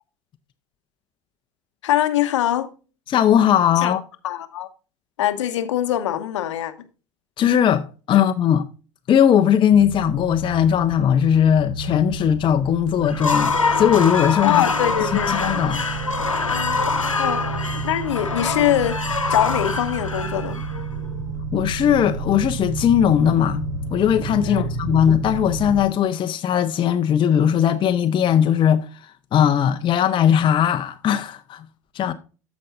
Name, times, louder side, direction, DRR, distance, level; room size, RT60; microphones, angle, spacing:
voice 1, 1.8-2.7 3.8-3.9 4.2-4.7 5.2-6.7 14.4-15.3 17.2-17.5 17.8-20.6 24.4-24.7, left 12 dB, 70° left, 0.9 m, -23 dB
voice 2, 3.1-4.0 7.4-8.6 9.1-14.6 15.0-15.8 21.5-23.7 23.9-28.9 29.3-31.6 31.9-32.1, left 9 dB, 30° left, 0.7 m, -19 dB
sound 1, 9.7-25.8, right 3 dB, 60° right, 1.7 m, -31 dB
sound 2, 13.0-21.2, left 4 dB, 90° left, 1.0 m, -25 dB
14.0 x 5.3 x 2.5 m
figure-of-eight pair, 70°, 16 cm